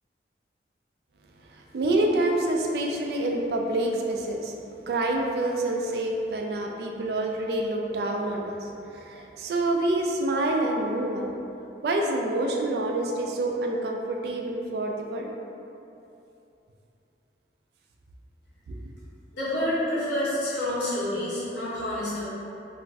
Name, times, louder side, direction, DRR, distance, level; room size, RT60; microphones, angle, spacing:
voice 1, 1.5-4.5 4.9-11.3 11.8-15.3 18.7-18.8, right 2 dB, 65° right, 1 dB, 0.3 m, -27 dB
voice 2, 19.3-22.2, left 1 dB, 85° left, -9 dB, 1.0 m, -28 dB
2.5 x 2.3 x 3.9 m, 2.8 s
head